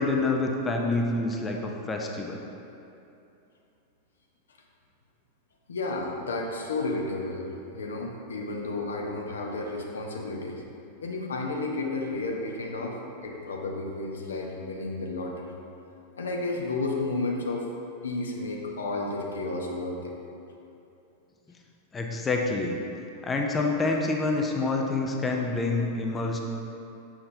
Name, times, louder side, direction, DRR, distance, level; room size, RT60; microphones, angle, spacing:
voice 1, 0.0-2.4 21.9-22.8 23.2-26.4, left 3 dB, 15° left, 1 dB, 0.5 m, -27 dB
voice 2, 5.7-7.5 7.7-10.6 11.0-13.0 13.2-15.4 16.2-17.7 18.0-20.2, left 2 dB, 70° left, 0 dB, 0.6 m, -32 dB
6.5 x 5.8 x 2.7 m, 2.7 s
figure-of-eight pair, 90°, 0 cm